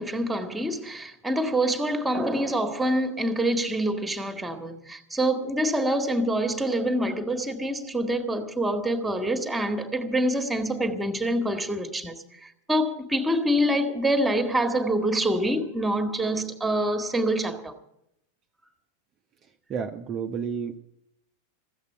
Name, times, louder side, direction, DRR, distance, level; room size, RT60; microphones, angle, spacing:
voice 1, 0.0-17.8, right 1 dB, 5° right, 1.6 m, -26 dB
voice 2, 19.7-20.8, right 6 dB, 30° right, 0.8 m, -31 dB
14.5 x 8.2 x 9.9 m
figure-of-eight pair, 90°, 0 cm